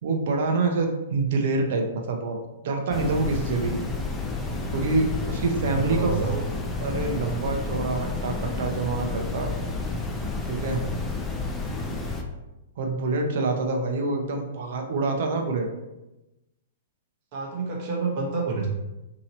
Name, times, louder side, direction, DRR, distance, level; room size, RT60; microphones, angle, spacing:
voice 1, 0.0-2.4 2.6-3.8 4.7-6.2 6.8-9.5 10.5-10.8 12.8-15.7, right 3 dB, 60° right, 3 dB, 0.7 m, -26 dB
sound 1, 2.9-12.2, left 3 dB, 10° left, 0.5 m, -30 dB
voice 2, 5.5-6.4 10.7-11.1 17.3-18.7, right 4 dB, 45° right, -1 dB, 1.0 m, -29 dB
2.8 x 2.8 x 4.0 m, 1.0 s
hypercardioid pair, 130°, 0 cm